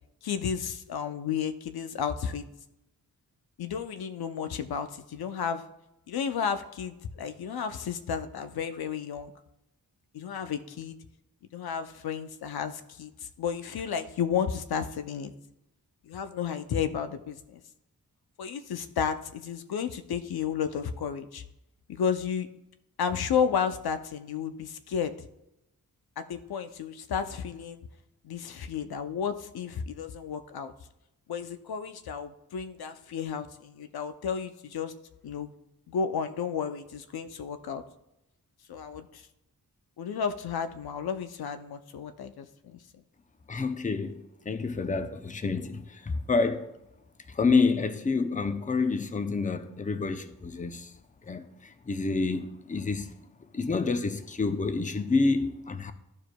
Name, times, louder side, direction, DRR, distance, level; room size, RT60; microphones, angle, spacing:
voice 1, 0.2-2.4 3.6-5.6 6.1-9.3 10.1-11.0 11.5-13.1 13.4-15.3 16.1-17.6 18.4-21.4 21.9-22.5 23.0-25.1 26.2-27.8 28.2-30.7 31.3-34.9 35.2-35.5 35.9-37.8 38.7-39.2 40.0-42.8, left 7 dB, 90° left, 0.6 m, -32 dB
voice 2, 43.5-46.7 47.3-50.9 51.3-51.4 51.9-53.1 53.5-55.9, left 4 dB, 20° left, 0.5 m, -28 dB
13.0 x 4.8 x 2.2 m
wide cardioid pair, 85°, 36 cm